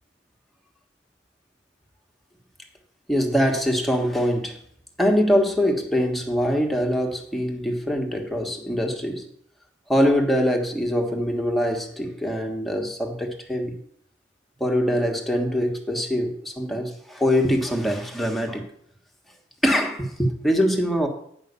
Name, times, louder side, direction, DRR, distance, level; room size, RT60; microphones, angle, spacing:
voice 1, 3.1-4.6 5.0-9.3 9.9-13.8 14.6-18.7 19.6-21.1, equal, ahead, 1 dB, 1.4 m, -23 dB
9.7 x 5.7 x 6.7 m, 0.67 s
head